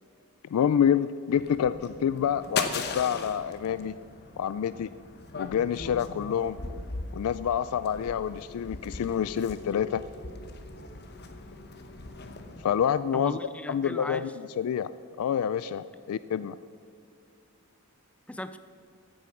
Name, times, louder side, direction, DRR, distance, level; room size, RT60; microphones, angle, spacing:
voice 1, 0.5-3.9 4.4-4.9 5.4-6.6 7.1-10.0 12.6-13.4 13.7-14.3 14.6-14.9 15.2-16.6, left 8 dB, 80° left, 15 dB, 0.3 m, -27 dB
sound 1, 1.3-12.6, left 4 dB, 45° left, 1.0 m, -39 dB
voice 2, 13.1-14.3 18.3-18.6, left 1 dB, 5° left, 11 dB, 0.4 m, -37 dB
14.5 x 8.5 x 5.8 m, 2.5 s
head